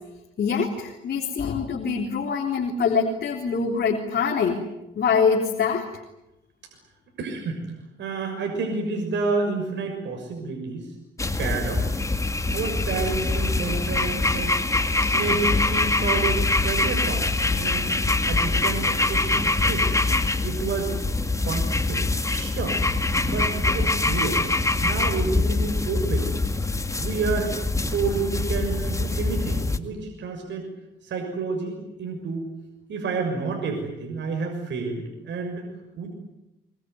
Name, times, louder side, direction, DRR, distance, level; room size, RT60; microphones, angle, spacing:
voice 1, 0.4-4.6 5.0-5.9, left 5 dB, 55° left, 1 dB, 3.7 m, -24 dB
voice 2, 7.2-7.6 8.0-10.9 11.4-11.9 12.5-14.5 15.1-17.3 17.6-18.0 18.3-19.9 20.4-21.0 21.4-22.8 23.2-24.4 24.8-26.3 27.0-27.6 27.9-30.7 31.0-32.5 32.9-35.7 36.0-36.1, right 4 dB, 65° right, 2 dB, 6.5 m, -29 dB
sound 1, 11.2-29.8, left 2 dB, 15° left, 2.1 m, -24 dB
24.0 x 23.5 x 9.7 m, 0.91 s
cardioid pair, 90°, 20 cm